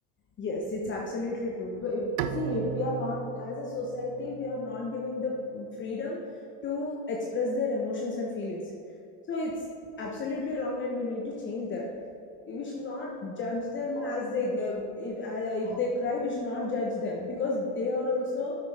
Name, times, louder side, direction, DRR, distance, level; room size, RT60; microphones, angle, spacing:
voice 1, 0.4-6.2 6.6-8.6 9.3-9.6 10.0-11.9 12.5-18.6, left 2 dB, 30° left, -2 dB, 1.2 m, -31 dB
Bowed string instrument, 2.2-5.4, right 9 dB, 65° right, 0.7 m, -37 dB
9.8 x 8.8 x 3.5 m, 2.5 s
supercardioid pair, 125°, 36 cm